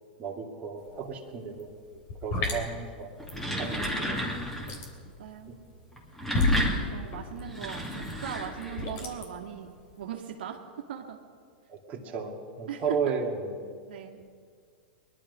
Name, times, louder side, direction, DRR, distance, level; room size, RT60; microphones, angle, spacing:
voice 1, 0.2-1.7 2.2-3.1 3.6-4.2 5.5-5.6 11.7-13.5, right 5 dB, 30° right, 0 dB, 2.3 m, -34 dB
sound 1, 0.8-1.0 1.3-10.0, left 2 dB, 45° left, 3.4 m, -32 dB
sound 2, 3.1-4.8 5.9-9.0, equal, 5° left, 2.7 m, -32 dB
voice 2, 5.0-5.5 6.9-9.7 10.0-10.6 10.9-11.2 12.7-13.1 13.9-14.2, right 9 dB, 75° right, 1 dB, 1.7 m, -39 dB
21.5 x 11.5 x 5.4 m, 2.1 s
hypercardioid pair, 125°, 5 cm